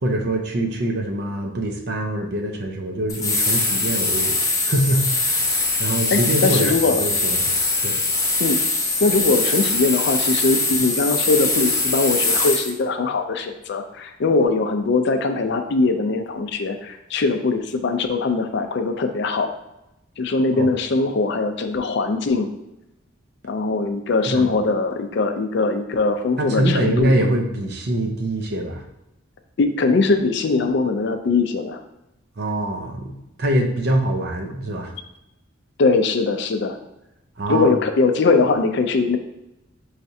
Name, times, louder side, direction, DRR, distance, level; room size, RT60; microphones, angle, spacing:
voice 1, 0.0-4.4 4.6-5.4 5.8-7.4 7.8-8.0 20.5-20.7 24.3-24.5 26.4-28.8 32.4-34.9 37.4-37.7, right 1 dB, 55° right, 3 dB, 0.6 m, -24 dB
sound 1, 3.1-12.7, left 2 dB, 15° left, 0.8 m, -22 dB
voice 2, 6.1-7.0 8.4-8.6 9.0-19.5 20.2-22.5 23.4-27.2 29.6-31.8 35.8-36.8 37.5-39.2, left 3 dB, 60° left, 7 dB, 0.4 m, -21 dB
5.8 x 3.2 x 2.7 m, 0.90 s
head